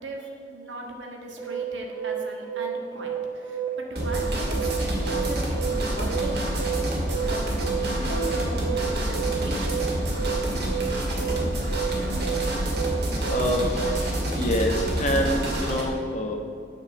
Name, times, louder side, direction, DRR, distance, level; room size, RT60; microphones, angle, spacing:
voice 1, 0.0-3.6 3.9-10.2, right 1 dB, 90° right, 0 dB, 1.7 m, -38 dB
sound 1, 1.4-14.0, right 9 dB, 30° right, 1.9 m, -31 dB
sound 2, 4.0-15.8, right 1 dB, 60° right, 2.0 m, -27 dB
voice 2, 12.2-12.7 13.3-16.4, left 1 dB, 40° left, 2 dB, 1.2 m, -27 dB
8.7 x 6.0 x 7.3 m, 2.4 s
head